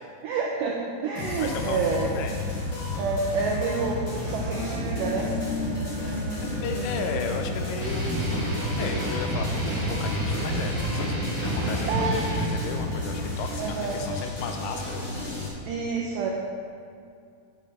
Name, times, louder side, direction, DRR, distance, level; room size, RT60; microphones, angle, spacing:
voice 1, 0.2-0.8 1.0-2.1 3.0-5.4 11.9-12.2 13.6-14.0 15.7-16.3, right 4 dB, 85° right, -1 dB, 1.9 m, -28 dB
sound 1, 1.2-15.5, left 2 dB, 60° left, 1.3 m, -32 dB
voice 2, 1.4-2.4 6.4-8.2 8.8-9.6 9.9-15.3, left 5 dB, 80° left, 5 dB, 2.7 m, -35 dB
sound 2, 3.8-9.0, left 1 dB, 65° right, 2.0 m, -36 dB
sound 3, 7.8-12.8, right 1 dB, 40° right, 1.3 m, -29 dB
7.0 x 6.2 x 6.8 m, 2.3 s
omnidirectional pair, 4.6 m